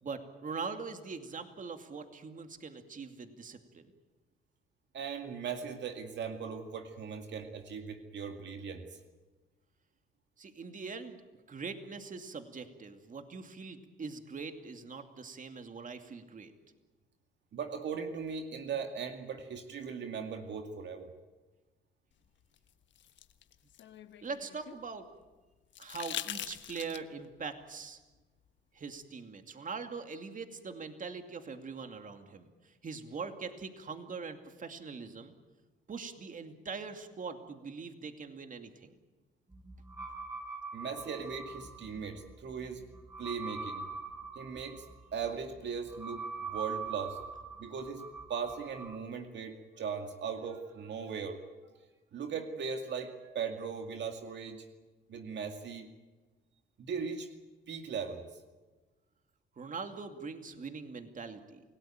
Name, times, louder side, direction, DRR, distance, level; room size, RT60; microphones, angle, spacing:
voice 1, 0.0-3.9 10.4-11.2 11.5-16.5 24.2-25.1 25.8-28.0 28.7-35.3 35.9-38.9 59.6-61.6, right 4 dB, 40° right, 6 dB, 2.5 m, -42 dB
voice 2, 4.9-8.9 17.5-21.1 40.7-42.8 43.2-43.9 44.3-44.9 45.1-47.2 47.6-51.4 52.1-54.7 55.1-55.9 56.8-57.3 57.7-58.3, right 6 dB, 65° right, 5 dB, 2.3 m, -39 dB
sound 1, 22.6-24.8 25.7-27.3 28.9-29.0, left 11 dB, 70° left, 1.3 m, -42 dB
sound 2, 39.5-49.0, right 4 dB, 20° right, 7.0 m, -43 dB
28.0 x 18.0 x 8.9 m, 1.2 s
cardioid pair, 90°, 20 cm